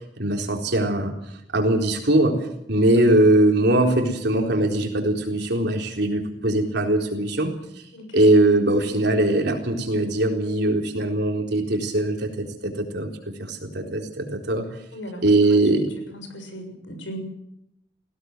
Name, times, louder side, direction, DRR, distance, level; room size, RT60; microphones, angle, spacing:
voice 1, 0.2-1.1 1.5-7.5 8.1-13.1 13.4-14.6 15.2-15.9, right 1 dB, 60° right, 2 dB, 4.0 m, -21 dB
voice 2, 14.9-15.2 16.1-17.2, equal, 90° left, 6 dB, 6.6 m, -37 dB
20.0 x 17.0 x 8.0 m, 0.80 s
head